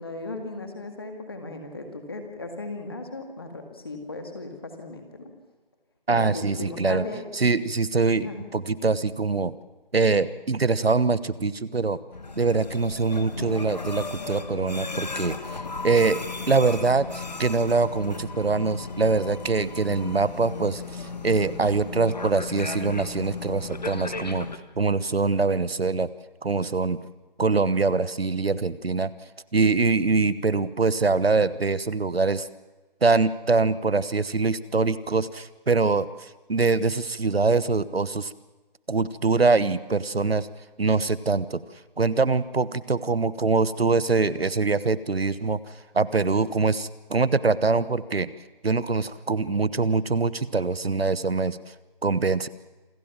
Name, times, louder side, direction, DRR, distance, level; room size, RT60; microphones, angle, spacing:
voice 1, 0.0-5.3 6.1-7.2 8.1-8.5, left 2 dB, 25° left, 4 dB, 2.0 m, -37 dB
voice 2, 6.1-7.0 7.3-9.5 9.9-12.0 12.4-16.2 16.5-24.5 24.8-26.1 26.4-27.0 27.4-29.1 29.5-32.5 33.0-38.3 38.9-40.5 40.8-41.6 42.0-48.3 48.6-51.6 52.0-52.5, right 4 dB, 85° right, 17 dB, 1.2 m, -24 dB
sound 1, 12.1-24.6, left 4 dB, 45° left, 1.5 m, -35 dB
27.5 x 14.0 x 7.4 m, 1.2 s
figure-of-eight pair, 175°, 29 cm